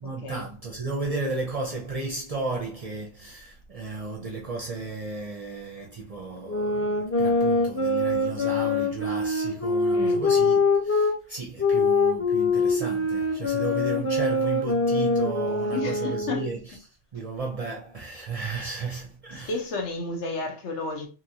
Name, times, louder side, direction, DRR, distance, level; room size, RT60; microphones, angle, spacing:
voice 1, 0.0-16.8 17.1-19.5, right 3 dB, 45° right, 0.5 m, -34 dB
sound 1, 6.5-11.1 11.6-16.6, left 3 dB, 15° left, 0.5 m, -24 dB
voice 2, 15.7-16.5 19.3-21.1, left 3 dB, 75° left, 1.1 m, -32 dB
2.8 x 2.8 x 2.6 m
omnidirectional pair, 1.2 m